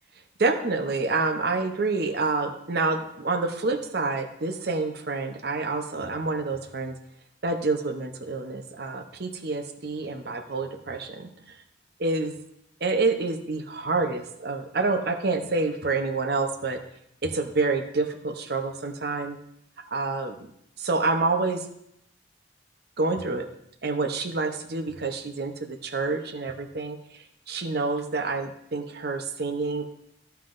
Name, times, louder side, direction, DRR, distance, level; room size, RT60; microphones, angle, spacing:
voice 1, 0.4-6.9 7.4-11.3 12.0-12.3 12.8-16.8 17.2-19.4 19.9-20.4 20.8-21.6 23.0-23.4 23.8-25.5 25.8-27.0 27.5-29.8, right 3 dB, 55° right, 6 dB, 0.7 m, -27 dB
15.0 x 5.7 x 2.6 m, 0.77 s
head